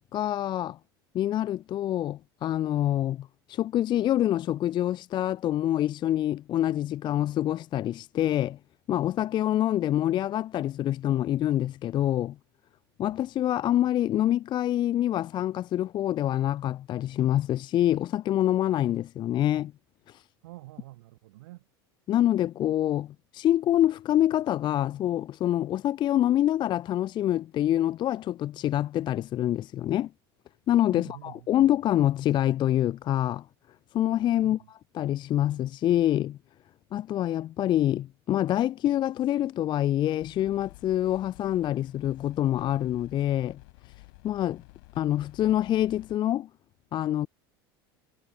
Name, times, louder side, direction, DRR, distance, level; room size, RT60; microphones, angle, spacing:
voice 1, 0.1-0.8 1.1-8.6 8.9-12.4 13.0-19.7 20.1-20.2 22.1-30.1 30.7-33.5 33.9-34.6 34.9-36.4 36.9-43.6 44.2-44.6 45.0-46.5 46.9-47.3, left 12 dB, 35° left, 0.4 m, -26 dB
voice 2, 20.4-21.6 30.9-31.5 34.3-34.7, right 18 dB, 75° right, 1.7 m, -46 dB
sound 1, 40.2-46.2, left 26 dB, 65° left, 0.9 m, -52 dB
hypercardioid pair, 85°, 13 cm